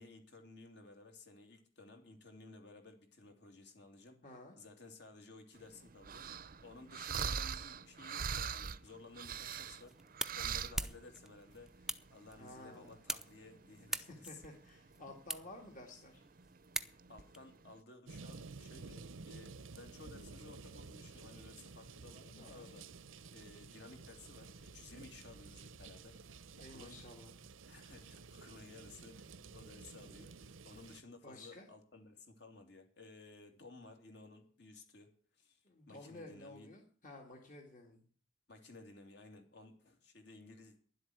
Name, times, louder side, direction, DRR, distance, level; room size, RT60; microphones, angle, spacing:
voice 1, 0.0-10.0 10.4-14.4 16.8-23.0 23.3-26.2 26.6-27.0 27.6-36.7 38.5-40.8, left 3 dB, 60° left, 5 dB, 2.9 m, -56 dB
voice 2, 4.2-4.6 12.4-13.0 14.1-16.2 22.4-22.7 26.5-27.3 31.2-31.7 35.6-38.1, left 2 dB, 40° left, 1 dB, 2.1 m, -53 dB
sound 1, 5.6-17.8, right 7 dB, 45° right, 0.6 m, -43 dB
sound 2, 9.5-17.4, right 1 dB, 5° right, 0.6 m, -45 dB
sound 3, 18.1-31.0, right 4 dB, 85° right, 0.8 m, -53 dB
11.0 x 7.9 x 9.4 m, 0.43 s
head